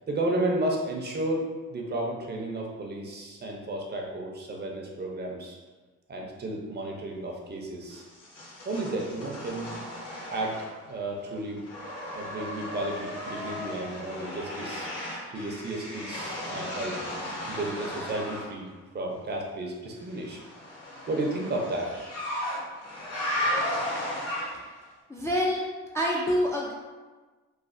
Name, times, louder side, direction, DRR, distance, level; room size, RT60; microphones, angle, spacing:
voice 1, 0.1-5.6 6.1-8.0 8.7-9.8 10.3-10.5 10.9-11.6 12.1-14.9 15.3-17.0 17.5-18.7 18.9-20.4 21.1-21.9, right 1 dB, 35° right, -1 dB, 0.6 m, -32 dB
sound 1, 7.9-11.0 11.3-18.5 20.1-24.8, left 1 dB, 50° left, 1.0 m, -35 dB
voice 2, 25.1-25.7 25.9-26.7, equal, 10° left, -4 dB, 0.3 m, -26 dB
3.2 x 2.3 x 2.5 m, 1.3 s
cardioid pair, 90°, 30 cm